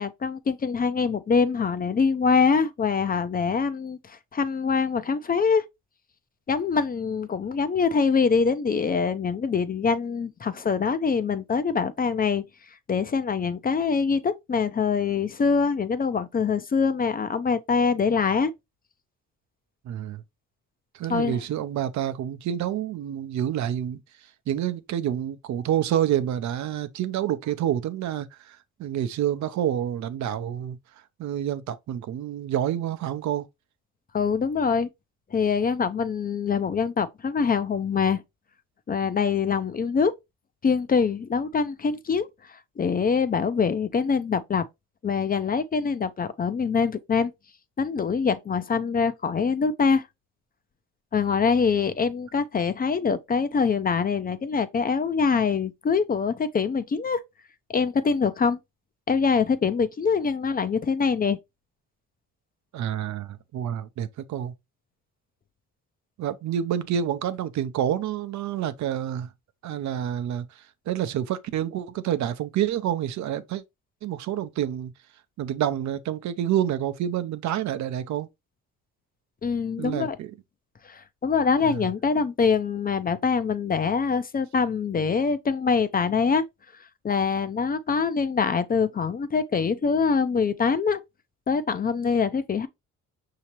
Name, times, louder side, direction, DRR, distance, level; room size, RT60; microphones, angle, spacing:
voice 1, 0.0-5.6 6.5-12.4 12.9-18.5 21.1-21.4 34.1-34.9 35.3-38.2 38.9-40.1 40.6-44.6 45.0-47.3 47.8-50.1 51.1-57.2 57.7-58.6 59.1-61.4 79.4-80.2 80.8-86.4 87.0-91.0 91.5-92.7, left 5 dB, 30° left, 0.5 m, -24 dB
voice 2, 19.8-20.2 20.9-24.0 24.5-30.8 31.2-33.5 62.7-64.5 66.2-69.3 69.6-73.6 74.0-74.9 75.4-78.3 79.8-80.3 81.6-81.9, right 10 dB, 70° right, 0.6 m, -28 dB
5.6 x 2.8 x 2.9 m
cardioid pair, 90°, 30 cm